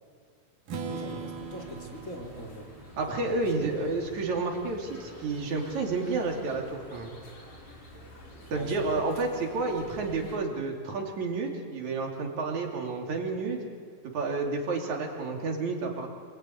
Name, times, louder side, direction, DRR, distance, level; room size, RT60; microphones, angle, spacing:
Strum, 0.7-4.6, right 5 dB, 85° right, 3.4 m, -41 dB
voice 1, 0.8-2.7 3.2-3.7 8.5-9.0, equal, 25° left, 1 dB, 2.7 m, -42 dB
sound 1, 0.9-10.4, equal, 65° left, 6.6 m, -49 dB
voice 2, 3.0-7.1 8.5-13.6 14.1-16.1, right 3 dB, 60° right, 1 dB, 4.1 m, -30 dB
27.0 x 20.5 x 9.5 m, 2.2 s
omnidirectional pair, 3.7 m